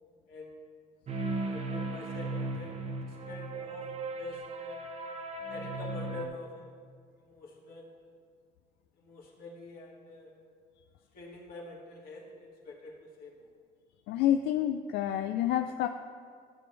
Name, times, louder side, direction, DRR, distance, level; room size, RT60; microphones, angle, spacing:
voice 1, 0.3-0.7 1.4-3.9 4.1-4.8 5.5-6.7 7.2-8.1 9.0-10.4 11.1-13.5, left 2 dB, 60° left, -3 dB, 2.4 m, -46 dB
sound 1, 1.1-6.3, right 2 dB, 40° right, 0.9 m, -37 dB
voice 2, 14.1-15.9, left 11 dB, 85° left, 7 dB, 0.4 m, -28 dB
13.5 x 7.0 x 3.3 m, 2.1 s
cardioid pair, 110°, 17 cm